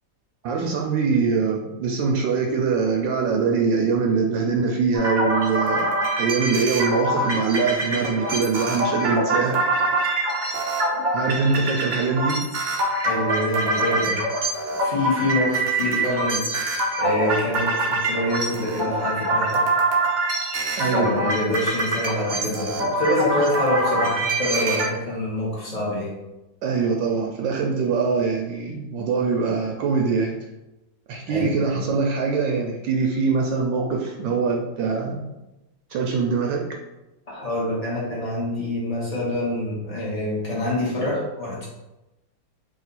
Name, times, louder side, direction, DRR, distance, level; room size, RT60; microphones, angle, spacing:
voice 1, 0.4-5.9 6.2-9.6 11.1-12.4 20.8-21.1 26.6-30.4 31.1-35.3 35.9-36.6, right 5 dB, 80° right, 1 dB, 1.3 m, -23 dB
sound 1, 4.9-24.9, right 1 dB, 55° right, 0.5 m, -24 dB
voice 2, 13.0-14.2 14.8-16.5 17.0-19.7 20.8-26.2 31.3-31.8 37.3-41.7, left 1 dB, 25° left, -6 dB, 1.1 m, -26 dB
3.7 x 2.7 x 4.1 m, 0.98 s
omnidirectional pair, 2.1 m